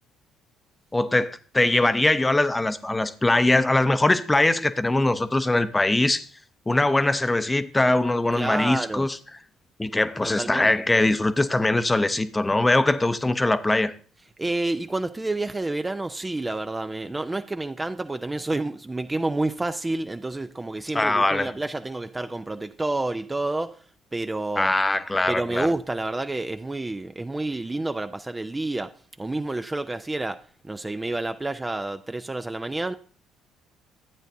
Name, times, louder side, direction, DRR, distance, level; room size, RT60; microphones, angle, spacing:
voice 1, 0.9-6.2 6.7-9.2 9.8-13.9 20.9-21.5 24.6-25.7, left 2 dB, 15° left, 0.7 m, -22 dB
voice 2, 8.3-9.1 10.4-10.7 14.4-23.8 24.1-24.7 25.3-32.9, right 2 dB, 15° right, 0.4 m, -29 dB
12.0 x 8.9 x 2.6 m
hypercardioid pair, 50°, 0 cm